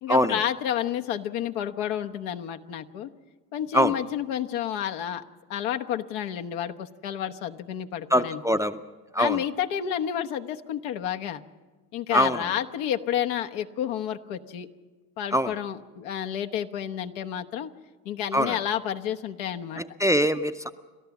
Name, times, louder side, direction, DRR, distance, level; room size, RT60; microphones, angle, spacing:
voice 1, 0.0-3.1 3.5-5.2 5.5-8.4 9.2-11.4 11.9-14.7 15.2-17.7 18.0-19.8, left 10 dB, 75° left, 6 dB, 1.2 m, -30 dB
voice 2, 8.1-8.8 9.1-9.4 12.1-12.5 15.3-15.5 18.3-18.6 19.8-20.7, equal, 5° right, 9 dB, 0.5 m, -23 dB
29.5 x 13.0 x 7.2 m, 1.3 s
supercardioid pair, 90°, 47 cm